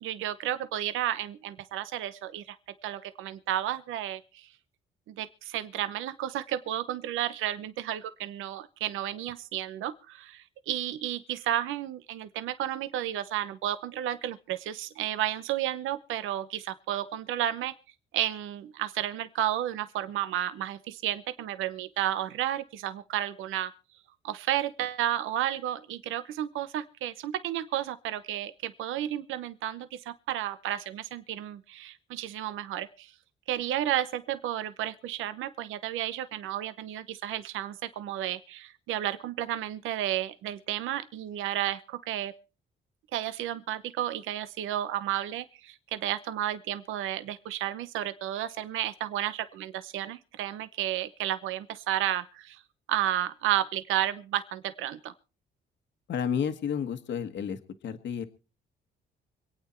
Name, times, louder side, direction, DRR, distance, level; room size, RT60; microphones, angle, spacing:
voice 1, 0.0-2.6 2.8-4.5 5.2-17.7 18.1-23.7 24.2-33.1 33.5-42.3 43.1-52.6 52.9-55.1, right 12 dB, 85° right, 12 dB, 0.9 m, -32 dB
voice 2, 56.1-58.2, left 7 dB, 65° left, 7 dB, 1.5 m, -31 dB
25.5 x 9.1 x 4.4 m, 0.35 s
cardioid pair, 90°, 20 cm